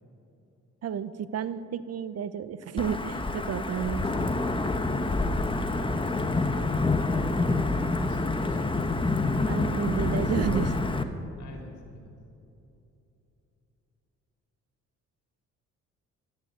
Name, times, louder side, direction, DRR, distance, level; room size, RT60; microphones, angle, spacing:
voice 1, 0.8-4.3 9.5-11.1, right 8 dB, 55° right, 14 dB, 0.8 m, -32 dB
Wind / Thunder / Rain, 2.8-11.0, left 2 dB, 15° left, 1.1 m, -27 dB
voice 2, 5.1-7.3 8.0-9.0 11.4-12.2, left 2 dB, 70° left, 1 dB, 3.9 m, -47 dB
13.5 x 10.5 x 9.7 m, 2.8 s
cardioid pair, 90°, 30 cm